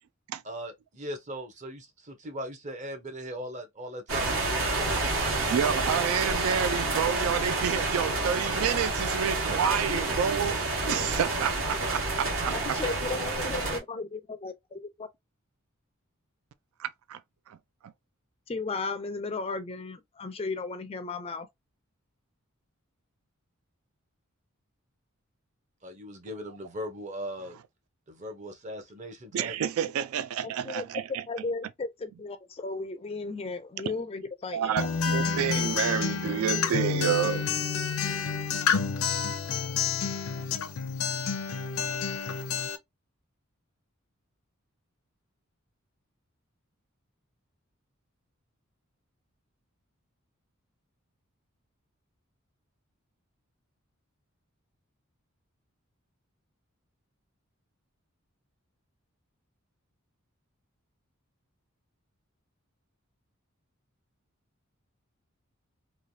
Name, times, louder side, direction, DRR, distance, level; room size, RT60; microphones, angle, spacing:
voice 1, 0.4-5.1 25.8-27.6 28.1-29.6, equal, 35° right, 0.8 m, -39 dB
sound 1, 4.1-13.8, right 3 dB, 65° right, 1.3 m, -29 dB
voice 2, 5.5-10.6 10.9-12.8 16.8-17.2 17.5-17.6 17.8-17.9 29.3-31.2 34.5-37.5, right 8 dB, 80° right, 0.3 m, -29 dB
voice 3, 12.5-15.1 18.5-21.5 30.4-34.8, left 3 dB, 25° left, 0.4 m, -35 dB
Acoustic guitar, 34.8-42.8, left 6 dB, 85° left, 0.5 m, -29 dB
3.2 x 2.3 x 2.6 m
head